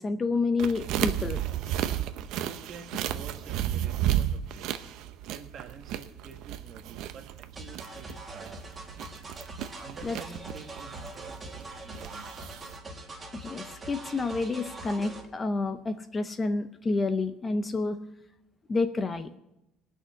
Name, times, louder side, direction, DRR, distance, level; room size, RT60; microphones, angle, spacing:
voice 1, 0.0-1.4 10.0-10.2 13.3-18.0 18.7-19.3, left 3 dB, 20° left, 10 dB, 0.5 m, -29 dB
sound 1, 0.6-12.8, right 11 dB, 65° right, 0.7 m, -33 dB
voice 2, 2.4-4.8 5.3-8.6 9.8-12.6, right 5 dB, 40° right, 6 dB, 1.4 m, -48 dB
sound 2, 7.6-15.3, right 1 dB, 15° right, 1.6 m, -43 dB
18.0 x 6.4 x 8.1 m, 0.89 s
cardioid pair, 160°, 0 cm